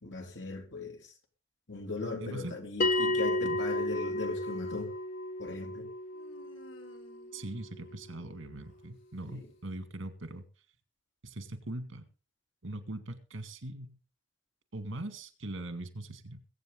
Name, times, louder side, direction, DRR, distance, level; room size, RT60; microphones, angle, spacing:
voice 1, 0.0-1.1 1.7-4.9 5.4-5.9 9.3-9.5, left 3 dB, 65° left, 2.8 m, -39 dB
voice 2, 2.2-2.5 3.1-3.6 7.3-10.4 11.2-12.0 12.6-14.0 14.7-16.4, right 1 dB, 85° right, 2.1 m, -41 dB
Bell, 2.8-7.9, left 1 dB, 40° left, 0.8 m, -33 dB
Human voice, 4.0-5.0 6.1-8.9, left 1 dB, 85° left, 3.1 m, -59 dB
22.0 x 8.5 x 3.8 m
head